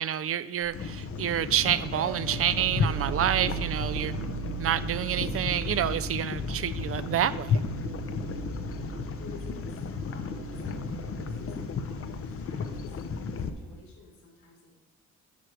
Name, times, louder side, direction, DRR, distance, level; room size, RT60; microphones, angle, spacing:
voice 1, 0.0-4.1 4.6-7.6, right 10 dB, 50° right, 15 dB, 0.4 m, -28 dB
sound 1, 0.6-13.8, equal, 5° left, 0.7 m, -50 dB
sound 2, 0.7-13.5, left 5 dB, 45° left, 0.7 m, -34 dB
sound 3, 1.9-13.8, right 9 dB, 85° right, 0.9 m, -39 dB
voice 2, 8.7-14.7, left 4 dB, 70° left, -2 dB, 3.3 m, -53 dB
9.3 x 4.4 x 6.4 m, 1.1 s
cardioid pair, 90°, 30 cm